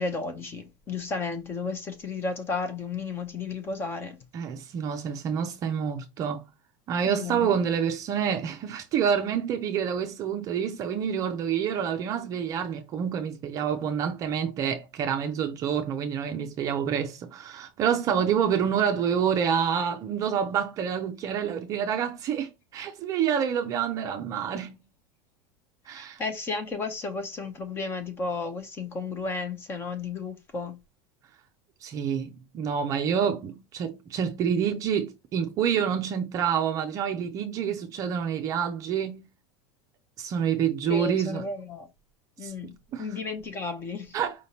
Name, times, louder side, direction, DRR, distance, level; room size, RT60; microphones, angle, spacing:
voice 1, 0.0-4.2 7.1-7.5 18.2-18.4 26.0-30.8 40.9-41.9 42.4-44.2, left 4 dB, 20° left, 0.7 m, -33 dB
voice 2, 4.3-6.4 6.9-24.8 25.9-26.2 31.8-39.3 40.2-41.5 42.4-43.1 44.1-44.5, right 8 dB, 25° right, 0.5 m, -28 dB
5.0 x 3.4 x 2.8 m
supercardioid pair, 175°, 13 cm